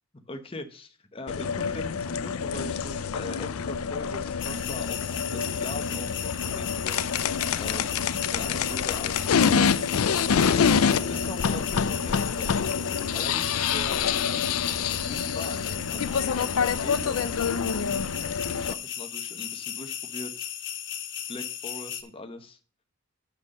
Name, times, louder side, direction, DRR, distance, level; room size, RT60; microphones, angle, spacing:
voice 1, 0.1-7.1 7.6-12.7 13.1-14.1 14.8-17.5 18.6-20.3 21.3-22.6, left 2 dB, 25° left, 5 dB, 1.0 m, -41 dB
sound 1, 1.3-18.7, left 6 dB, 80° left, 0.5 m, -27 dB
sound 2, 4.4-22.0, left 10 dB, 55° left, 1.2 m, -36 dB
7.1 x 6.2 x 6.4 m, 0.37 s
head